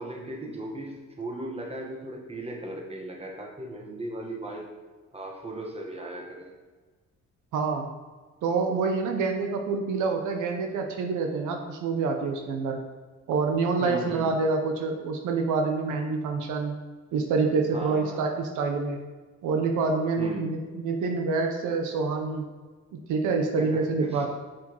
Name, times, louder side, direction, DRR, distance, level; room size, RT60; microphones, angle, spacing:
voice 1, 0.0-4.7 5.1-6.5 13.8-14.3 17.7-18.3 20.2-20.5 23.6-24.3, right 1 dB, 20° right, 0 dB, 1.2 m, -37 dB
voice 2, 7.5-7.9 8.4-12.8 13.3-16.8 17.1-19.0 19.4-22.5 23.1-24.3, right 4 dB, 85° right, 3 dB, 0.8 m, -27 dB
6.2 x 5.7 x 3.0 m, 1.4 s
cardioid pair, 90°, 30 cm